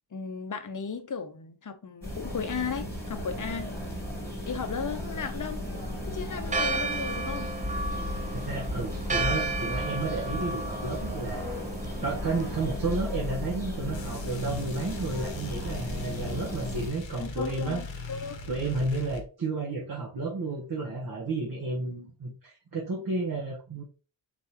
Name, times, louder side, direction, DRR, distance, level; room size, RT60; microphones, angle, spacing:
voice 1, 0.1-3.8 4.4-5.7 6.1-7.6 12.0-12.1 17.2-18.4, left 5 dB, 40° left, 0.7 m, -35 dB
sound 1, 2.0-16.9, left 1 dB, 5° left, 1.6 m, -35 dB
Church bell, 6.5-12.8, right 3 dB, 15° right, 0.4 m, -34 dB
voice 2, 8.3-11.4 12.0-17.8 18.5-23.8, right 3 dB, 50° right, 1.2 m, -32 dB
sound 2, 13.9-19.2, left 3 dB, 65° left, 1.0 m, -40 dB
4.1 x 3.7 x 2.9 m
wide cardioid pair, 105°, 49 cm